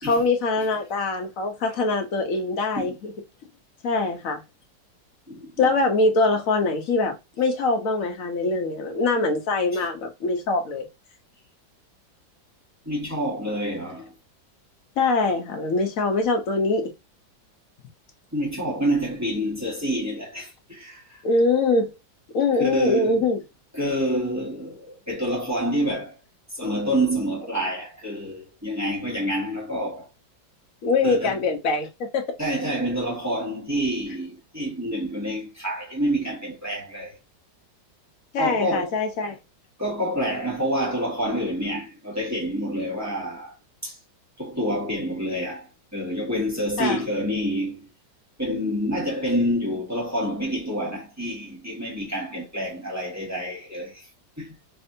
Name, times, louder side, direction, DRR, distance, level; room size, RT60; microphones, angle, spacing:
voice 1, 0.0-3.1 3.8-4.4 5.6-10.9 15.0-16.9 21.2-21.9 22.3-23.4 30.8-32.3 38.3-39.4 46.8-47.0, left 3 dB, 55° left, 1.1 m, -23 dB
voice 2, 12.8-14.1 18.3-21.2 22.6-23.3 23.7-26.2 26.5-30.1 31.0-31.3 32.4-37.2 38.4-39.0 39.8-43.5 43.8-44.0 44.4-47.9 48.4-54.1 54.4-54.5, equal, 10° right, 1.4 m, -27 dB
4.3 x 2.7 x 2.7 m
omnidirectional pair, 2.0 m